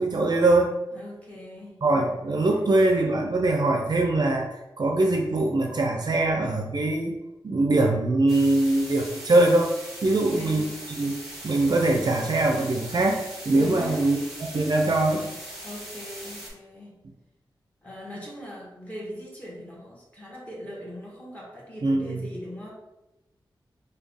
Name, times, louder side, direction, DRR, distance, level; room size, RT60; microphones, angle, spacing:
voice 1, 0.0-0.7 1.8-4.5 4.8-7.2 7.4-9.7 10.0-10.6 11.0-11.2 11.4-15.3 21.8-22.2, right 2 dB, 50° right, 2 dB, 0.4 m, -22 dB
voice 2, 0.9-1.8 10.0-10.8 13.6-14.1 15.6-17.0 17.8-22.7, equal, 15° left, -4 dB, 1.2 m, -40 dB
sound 1, 8.3-16.5, right 1 dB, 5° right, 1.3 m, -40 dB
3.5 x 2.2 x 3.3 m, 0.97 s
wide cardioid pair, 70°, 9 cm